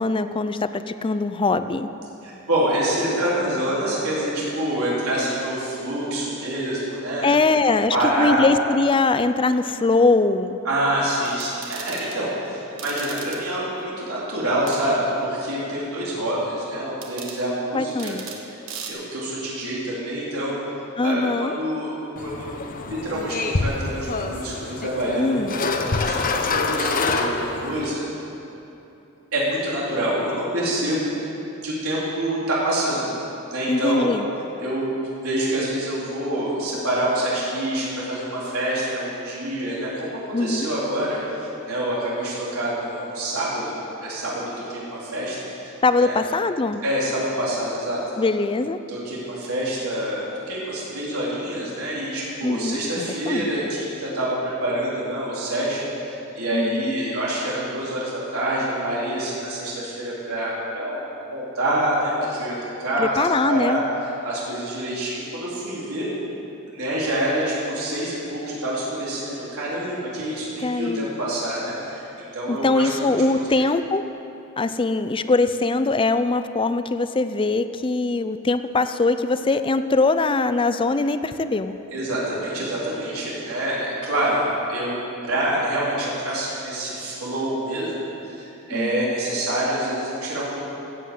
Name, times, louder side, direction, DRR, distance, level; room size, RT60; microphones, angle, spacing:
voice 1, 0.0-1.9 7.2-10.6 17.7-18.3 21.0-21.5 25.2-25.6 33.7-34.3 40.3-40.7 45.8-46.8 48.2-48.8 52.4-53.5 56.5-56.9 63.0-63.8 70.6-71.1 72.5-74.0 74.6-81.8 88.7-89.1, left 3 dB, 25° left, 11 dB, 0.5 m, -22 dB
voice 2, 2.2-7.3 7.6-8.5 10.6-18.1 18.7-20.6 21.0-22.5 22.9-25.6 25.9-26.2 26.5-28.0 29.3-31.1 31.6-33.1 33.5-34.1 34.6-43.7 44.0-45.7 46.0-46.2 46.8-48.0 48.9-50.2 50.5-61.0 61.3-63.2 63.5-63.8 64.2-66.1 66.7-72.9 73.3-73.7 81.9-88.0 88.2-90.6, right 1 dB, 90° right, -7 dB, 4.0 m, -26 dB
sound 1, 11.3-12.2 12.8-13.4 14.7-14.8 17.0-17.4 18.0-18.4 18.7-18.9, right 6 dB, 65° right, 1.6 m, -37 dB
sound 2, 22.2-27.9, left 3 dB, 40° left, 0.9 m, -26 dB
16.0 x 7.9 x 7.8 m, 3.0 s
head